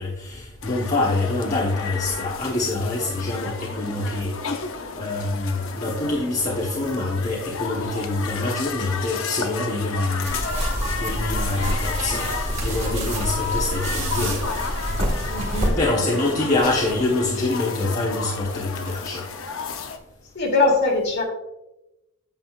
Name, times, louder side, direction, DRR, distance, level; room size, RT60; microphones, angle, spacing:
voice 1, 0.0-4.3 4.9-10.4 10.8-14.4 15.5-19.3, left 2 dB, 35° left, -5 dB, 1.2 m, -25 dB
sound 1, 0.6-20.0, left 5 dB, 80° left, 0.8 m, -32 dB
sound 2, 10.2-15.7, right 1 dB, 35° right, 2.0 m, -27 dB
voice 2, 15.3-15.8 20.3-21.2, left 3 dB, 55° left, 0 dB, 2.2 m, -21 dB
9.0 x 7.6 x 2.5 m, 0.97 s
head